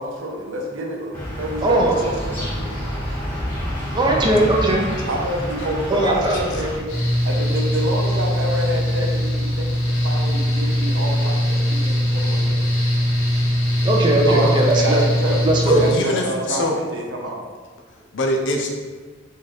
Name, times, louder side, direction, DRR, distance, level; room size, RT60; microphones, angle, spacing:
voice 1, 0.0-3.0 5.1-6.9 7.2-12.4 14.3-17.4, right 1 dB, 65° right, 0 dB, 0.6 m, -28 dB
sound 1, 1.1-6.8, equal, 10° left, 1.0 m, -28 dB
voice 2, 1.6-2.0 3.9-4.8 5.9-6.4 13.8-15.0 15.4-15.8, right 1 dB, 20° right, 0 dB, 0.5 m, -18 dB
voice 3, 6.3-6.6 15.6-16.9 17.9-18.7, left 1 dB, 60° left, 2 dB, 0.5 m, -24 dB
Mechanical fan, 6.9-15.9, equal, 80° left, 1.0 m, -21 dB
3.2 x 2.4 x 4.0 m, 1.5 s
head